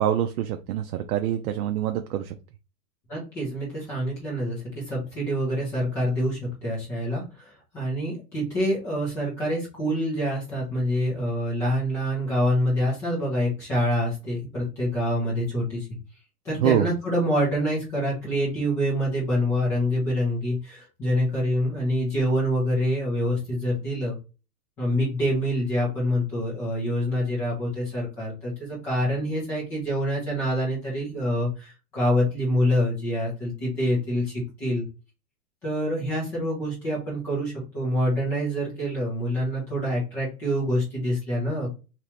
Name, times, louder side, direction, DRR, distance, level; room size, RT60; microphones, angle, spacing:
voice 1, 0.0-2.3 16.6-16.9, right 11 dB, 70° right, 6 dB, 0.6 m, -25 dB
voice 2, 3.1-15.9 16.4-24.2 24.8-34.8 35.6-41.7, equal, 5° left, -6 dB, 0.4 m, -26 dB
2.9 x 2.8 x 3.2 m, 0.31 s
supercardioid pair, 160°, 46 cm